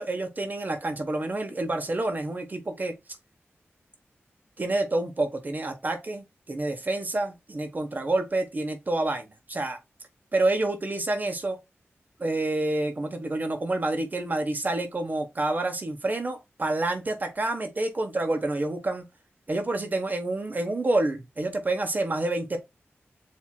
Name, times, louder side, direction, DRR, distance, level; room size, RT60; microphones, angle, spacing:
voice 1, 0.0-3.0 4.6-9.8 10.3-11.6 12.2-19.1 19.5-22.6, right 2 dB, 40° right, 1.0 m, -28 dB
7.4 x 2.8 x 2.3 m
wide cardioid pair, 100°, 5 cm